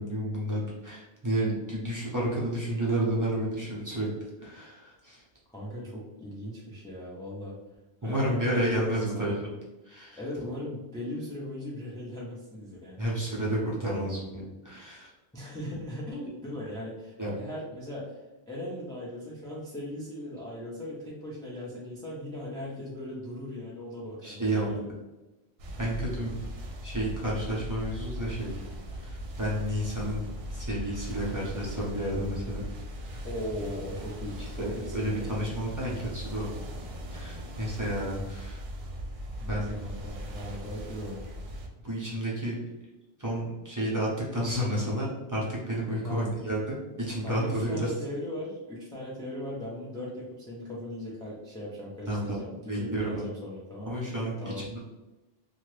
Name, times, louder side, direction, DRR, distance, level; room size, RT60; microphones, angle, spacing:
voice 1, 0.0-4.1 4.4-5.2 8.0-9.3 9.8-10.2 13.0-15.1 17.2-17.3 24.2-24.7 25.8-26.3 26.8-28.6 28.9-32.6 34.4-36.5 37.1-38.6 39.5-39.7 41.8-42.6 43.2-47.9 52.1-52.4 52.7-53.2 53.9-54.8, right 1 dB, 20° right, -5 dB, 0.8 m, -31 dB
voice 2, 5.5-7.6 8.0-9.3 10.1-13.0 15.3-18.2 18.5-24.8 33.2-35.3 39.4-41.4 46.0-46.3 47.2-54.0 54.4-54.6, left 1 dB, 5° left, -6 dB, 0.4 m, -38 dB
sound 1, 25.6-41.7, equal, 70° right, 0.8 m, -39 dB
2.8 x 2.4 x 3.2 m, 1.0 s
omnidirectional pair, 1.1 m